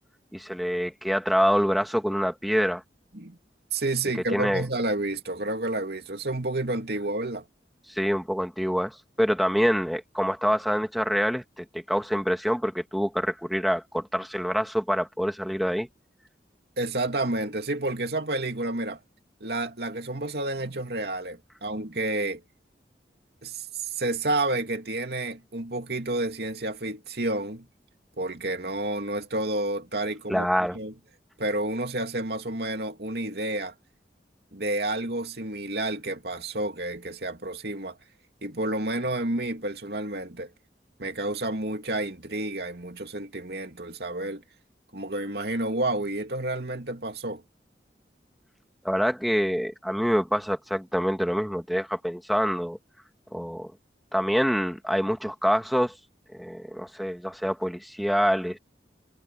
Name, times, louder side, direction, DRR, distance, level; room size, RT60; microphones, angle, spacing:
voice 1, 0.3-2.8 4.3-4.6 7.9-15.9 30.3-30.8 48.8-52.8 53.3-53.7 54.1-55.9 56.3-58.6, equal, ahead, 2.1 m, -26 dB
voice 2, 3.7-7.5 16.8-19.0 19.4-22.4 23.4-27.7 28.2-30.5 30.7-30.9 31.4-33.7 34.5-38.0 38.4-40.5 41.0-44.4 44.9-47.4, right 2 dB, 65° right, 2.6 m, -30 dB
head